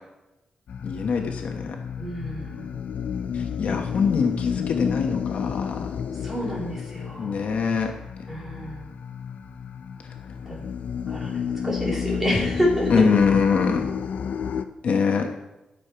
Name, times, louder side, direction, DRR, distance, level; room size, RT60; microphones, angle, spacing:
sound 1, 0.7-14.6, left 7 dB, 85° left, 0.6 m, -31 dB
voice 1, 0.8-1.8 3.3-5.9 7.2-7.9 12.9-13.9 14.8-15.3, left 5 dB, 70° left, 3 dB, 1.1 m, -23 dB
voice 2, 2.0-2.7 3.7-4.0 6.2-7.4 8.3-8.8 10.5-10.6 11.1-12.9, equal, 10° right, -5 dB, 3.6 m, -29 dB
12.0 x 6.6 x 4.5 m, 0.96 s
wide cardioid pair, 145°, 2 cm